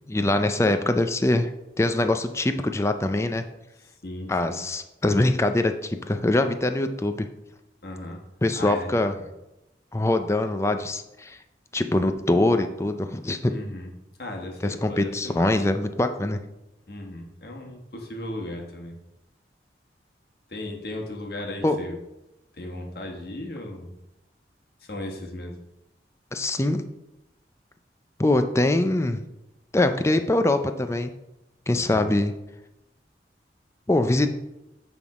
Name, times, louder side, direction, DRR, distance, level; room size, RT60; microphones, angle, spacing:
voice 1, 0.1-1.5 1.8-3.4 4.3-7.3 8.4-9.2 9.9-11.4 11.7-13.4 14.6-16.4 21.6-21.8 26.3-26.8 28.2-29.2 29.7-31.1 31.7-32.3 33.9-34.3, left 2 dB, 15° left, 8 dB, 0.4 m, -23 dB
voice 2, 4.0-4.6 7.8-8.2 8.6-9.3 13.5-13.9 14.2-15.5 16.9-19.0 20.5-22.0 22.5-23.9 24.9-25.6 31.8-32.1, left 1 dB, 60° left, 1 dB, 1.3 m, -36 dB
8.4 x 3.6 x 4.8 m, 0.93 s
head